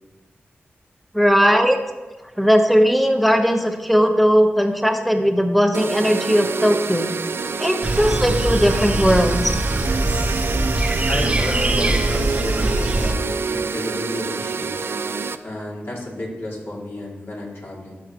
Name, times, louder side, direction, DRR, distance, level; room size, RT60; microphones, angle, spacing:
voice 1, 1.1-1.8 2.4-7.1 7.6-9.4, equal, ahead, 5 dB, 1.0 m, -18 dB
sound 1, 5.7-15.4, right 4 dB, 65° right, 0.4 m, -27 dB
sound 2, 7.8-13.1, right 1 dB, 25° right, 0.9 m, -22 dB
voice 2, 11.1-14.8 15.4-17.9, left 1 dB, 65° left, -4 dB, 2.8 m, -31 dB
13.5 x 5.8 x 3.1 m, 1.2 s
cardioid pair, 55°, 4 cm